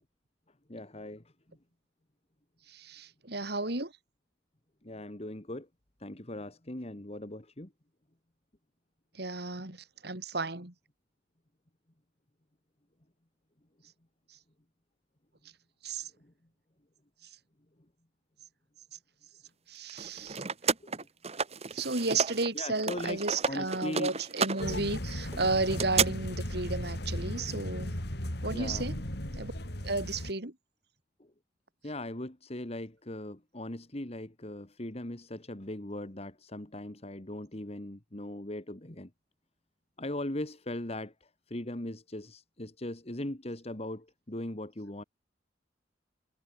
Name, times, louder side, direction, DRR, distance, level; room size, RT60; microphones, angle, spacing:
voice 1, 0.7-1.2 4.8-5.7 6.0-7.7 16.2-16.3 20.8-20.9 22.5-23.2 23.5-24.2 28.5-28.9 31.8-39.1 40.0-41.1 41.5-45.0, left 1 dB, 35° left, 1.9 m, -39 dB
voice 2, 2.7-3.9 9.1-10.7 15.8-16.1 19.7-20.4 21.7-28.0 28.4-29.0 29.4-29.5 29.8-30.5, right 3 dB, 60° right, 3.6 m, -33 dB
sound 1, 19.9-22.5 22.7-26.1, right 5 dB, 35° right, 1.9 m, -32 dB
sound 2, 24.6-30.3, left 1 dB, 65° left, 5.1 m, -36 dB
head